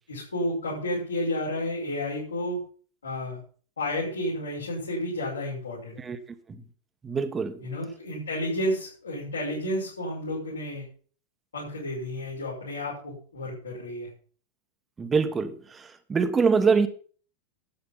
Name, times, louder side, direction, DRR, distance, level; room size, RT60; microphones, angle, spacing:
voice 1, 0.1-2.6 3.0-3.4 3.8-6.0 7.6-10.8 11.5-14.1, left 1 dB, 75° left, 6.2 m, -31 dB
voice 2, 7.0-7.6 15.0-16.9, right 5 dB, 20° right, 1.5 m, -24 dB
12.5 x 8.6 x 5.8 m
figure-of-eight pair, 90°, 0 cm